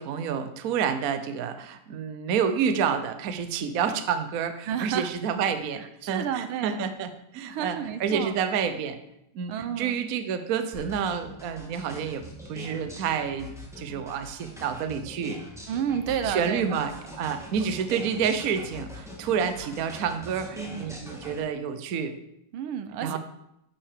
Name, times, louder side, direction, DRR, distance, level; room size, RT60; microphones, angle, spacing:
voice 1, 0.0-9.0 9.3-15.4 16.2-22.1 23.0-23.2, right 7 dB, 60° right, 9 dB, 0.9 m, -29 dB
voice 2, 4.7-5.1 6.0-6.8 7.4-8.3 9.5-10.0 15.7-16.8 20.6-21.0 22.5-23.2, right 8 dB, 75° right, 10 dB, 1.6 m, -31 dB
sound 1, 10.7-21.4, left 1 dB, ahead, 1.7 m, -42 dB
9.7 x 6.0 x 6.6 m, 0.80 s
omnidirectional pair, 2.4 m